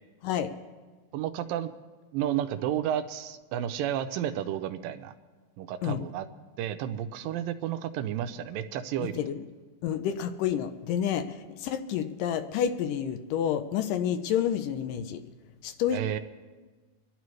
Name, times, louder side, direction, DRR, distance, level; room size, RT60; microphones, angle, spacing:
voice 1, 1.1-1.7 2.1-5.1 5.6-6.3 6.6-9.2 15.9-16.2, right 11 dB, 80° right, 9 dB, 2.2 m, -31 dB
voice 2, 9.0-9.4 9.8-15.2 15.6-16.0, left 9 dB, 80° left, 8 dB, 2.1 m, -29 dB
24.5 x 11.5 x 3.1 m, 1.3 s
omnidirectional pair, 4.1 m